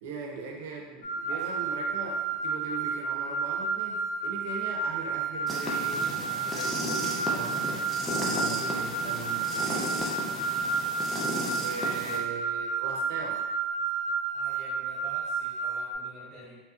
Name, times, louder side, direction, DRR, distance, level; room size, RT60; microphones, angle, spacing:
voice 1, 0.0-7.9 8.2-10.3 11.4-13.4, right 3 dB, 80° right, 0 dB, 0.5 m, -40 dB
sound 1, 1.0-15.9, right 4 dB, 65° left, 0.6 m, -31 dB
voice 2, 1.3-2.1 14.3-16.5, right 1 dB, 30° left, -9 dB, 1.5 m, -49 dB
sound 2, 5.5-12.2, equal, 5° left, 0.5 m, -34 dB
2.9 x 2.8 x 2.3 m, 1.3 s
supercardioid pair, 150°, 0 cm